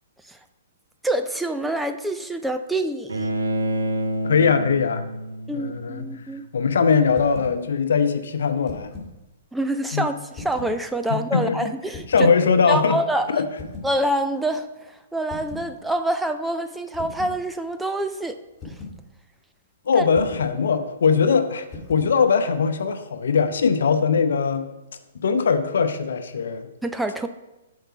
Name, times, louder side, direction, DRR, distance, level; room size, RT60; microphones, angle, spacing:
voice 1, 1.0-3.3 5.5-6.4 9.5-12.3 12.7-13.4 13.8-18.4 18.6-18.8 19.9-20.1 26.8-27.3, right 1 dB, 5° right, 8 dB, 0.4 m, -26 dB
Bowed string instrument, 3.1-6.2, right 1 dB, 75° right, 1.1 m, -28 dB
voice 2, 4.2-5.0 5.5-6.0 6.5-8.9 9.9-10.1 11.1-11.7 12.1-13.0 13.3-13.5 19.9-24.7 25.1-26.7, left 6 dB, 65° left, 8 dB, 0.7 m, -21 dB
sound 1, 7.1-7.6 8.5-9.2 10.3-10.8 11.9-12.3 13.6-14.0 15.3-15.7 16.9-17.4 18.6-19.0 20.1-20.5 21.7-22.1, left 3 dB, 20° left, 1.8 m, -38 dB
7.9 x 4.7 x 5.7 m, 1.0 s
figure-of-eight pair, 120°, 0 cm